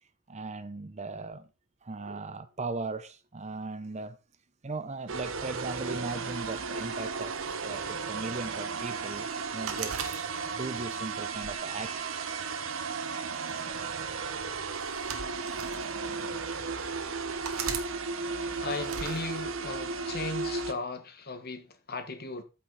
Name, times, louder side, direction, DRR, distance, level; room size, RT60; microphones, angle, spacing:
voice 1, 0.3-1.5 1.8-4.2 4.6-7.4 7.6-12.4 14.5-14.6, right 3 dB, 30° right, 0.7 m, -38 dB
sound 1, 5.1-20.7, right 4 dB, 65° right, 1.1 m, -35 dB
sound 2, 9.7-10.7 11.3-12.5 13.5-13.7 14.8-15.8 16.5-16.6 17.4-17.9 18.8-19.2, right 6 dB, 85° right, 1.7 m, -37 dB
voice 2, 18.6-22.4, left 3 dB, 45° left, 1.5 m, -37 dB
14.0 x 6.2 x 4.0 m
head